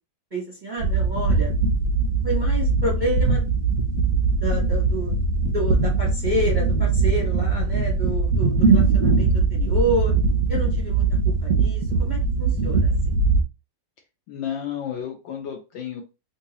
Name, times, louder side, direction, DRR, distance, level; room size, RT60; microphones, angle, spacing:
voice 1, 0.3-1.5 2.2-3.4 4.4-5.1 5.5-10.1 10.5-11.1 11.4-12.9, right 2 dB, 35° right, -5 dB, 0.8 m, -29 dB
sound 1, 0.8-13.4, right 3 dB, 80° right, 0.7 m, -21 dB
voice 2, 14.3-16.0, left 9 dB, 70° left, 3 dB, 1.2 m, -32 dB
3.7 x 2.8 x 2.9 m, 0.29 s
omnidirectional pair, 2.4 m